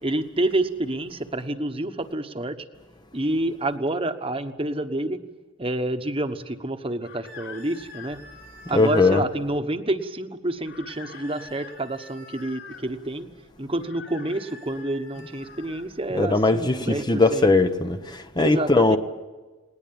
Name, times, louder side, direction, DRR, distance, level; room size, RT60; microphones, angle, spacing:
voice 1, 0.0-2.6 3.1-5.2 5.6-8.2 8.7-13.3 13.6-17.5 18.4-19.0, right 1 dB, 25° right, 1.2 m, -28 dB
sound 1, 7.0-9.3 10.6-12.8 13.8-15.9, left 4 dB, 55° left, 4.8 m, -44 dB
voice 2, 8.7-9.2 16.1-19.0, left 3 dB, 20° left, 0.8 m, -20 dB
19.5 x 19.0 x 8.8 m
head